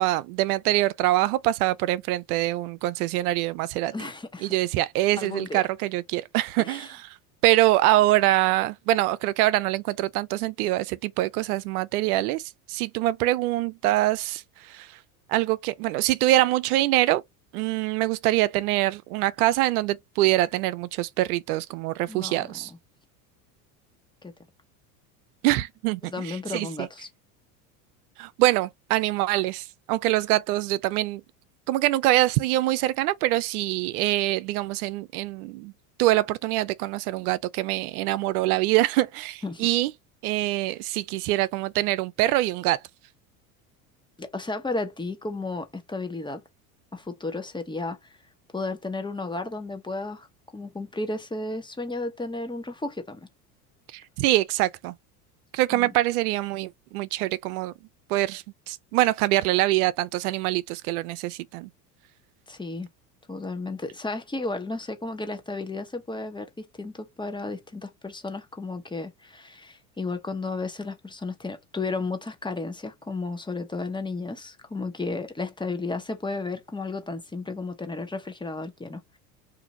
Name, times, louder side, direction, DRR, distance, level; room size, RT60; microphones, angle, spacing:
voice 1, 0.0-3.9 4.4-7.1 7.4-12.4 12.7-15.0 15.3-17.2 17.5-22.7 25.4-26.9 28.2-31.2 31.7-35.7 36.0-39.9 40.2-42.8 53.9-54.9 55.5-57.7 58.1-61.7, right 16 dB, 75° right, 0.5 m, -24 dB
voice 2, 3.9-4.5 5.2-5.6 6.6-6.9 22.1-22.7 24.2-24.3 26.0-27.1 39.4-39.7 44.2-46.4 46.9-48.0 48.5-50.3 50.5-53.2 55.7-55.9 62.5-62.9 63.3-79.2, left 3 dB, 10° left, 0.8 m, -33 dB
2.9 x 2.6 x 3.7 m
hypercardioid pair, 95°, 45 cm